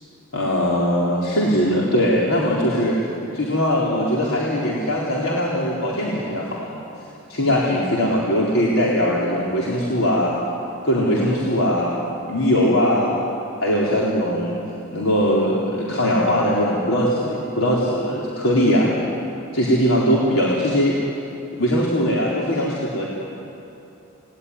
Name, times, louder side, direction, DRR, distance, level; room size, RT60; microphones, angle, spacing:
voice 1, 0.3-3.0 3.3-6.8 7.3-10.3 10.8-11.9 12.3-13.1 13.6-14.6 14.9-19.0 19.5-21.0 21.6-23.1, equal, 90° left, -5 dB, 4.1 m, -20 dB
29.0 x 20.5 x 10.0 m, 2.9 s
head